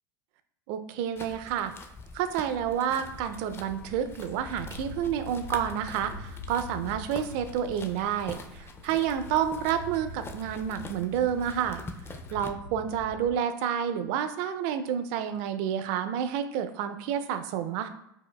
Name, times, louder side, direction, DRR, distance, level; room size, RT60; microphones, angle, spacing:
voice 1, 0.7-1.7 2.1-11.8 12.3-17.9, right 9 dB, 65° right, 9 dB, 0.4 m, -29 dB
sound 1, 1.2-12.5, left 3 dB, 20° left, 0.4 m, -45 dB
sound 2, 3.0-13.4, left 2 dB, 85° left, 0.8 m, -44 dB
4.8 x 2.0 x 2.2 m, 0.81 s
hypercardioid pair, 95°, 12 cm